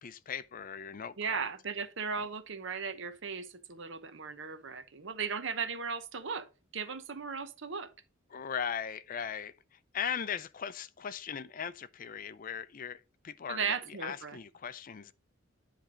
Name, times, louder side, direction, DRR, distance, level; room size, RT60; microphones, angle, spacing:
voice 1, 0.0-1.5 2.2-2.3 8.3-15.1, left 7 dB, 40° left, 0.4 m, -39 dB
voice 2, 1.2-6.5 6.7-7.9 13.5-14.4, right 5 dB, 65° right, 0.9 m, -36 dB
10.0 x 3.4 x 5.1 m
head